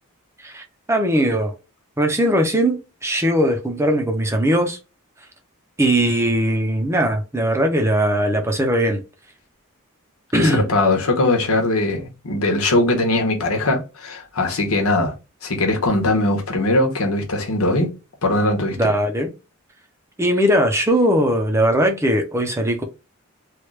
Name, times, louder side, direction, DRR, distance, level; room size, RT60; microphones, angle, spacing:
voice 1, 0.4-1.5 2.0-4.8 5.8-9.0 10.3-10.6 18.8-19.3 20.2-22.8, equal, 10° right, 0.6 m, -19 dB
voice 2, 10.3-15.1 15.4-17.9 18.2-18.9, left 2 dB, 75° left, 1.1 m, -20 dB
3.2 x 2.4 x 3.2 m
head